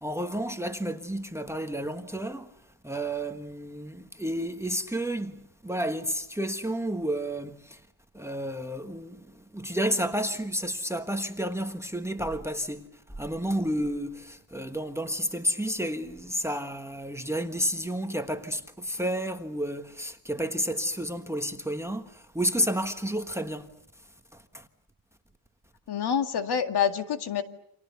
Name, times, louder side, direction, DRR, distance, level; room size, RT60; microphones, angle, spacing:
voice 1, 0.0-2.5 2.8-7.8 8.1-23.7 24.3-24.7, equal, 5° right, 1.3 m, -31 dB
voice 2, 25.9-27.4, left 8 dB, 50° left, 2.1 m, -27 dB
30.0 x 26.5 x 6.9 m
cardioid pair, 150°, 48 cm